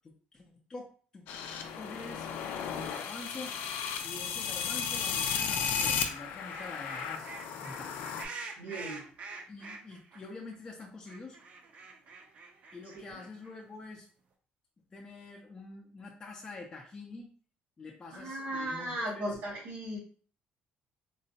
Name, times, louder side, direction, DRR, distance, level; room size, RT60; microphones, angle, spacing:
voice 1, 0.0-1.3 1.7-2.3 2.7-3.5 4.0-7.3 7.6-8.1 9.5-11.4 12.7-14.1 14.9-17.3 17.8-19.4, left 3 dB, 20° left, -1 dB, 0.5 m, -46 dB
sound 1, 1.3-8.2, left 7 dB, 85° left, 0.4 m, -34 dB
sound 2, 5.3-5.6 6.0-10.3 10.5-10.6 10.8-13.6, right 4 dB, 45° right, 0.5 m, -46 dB
voice 2, 8.6-9.0 12.9-13.2 18.1-20.0, right 1 dB, 90° right, -5 dB, 1.6 m, -37 dB
3.7 x 2.1 x 2.7 m, 0.43 s
cardioid pair, 145°, 3 cm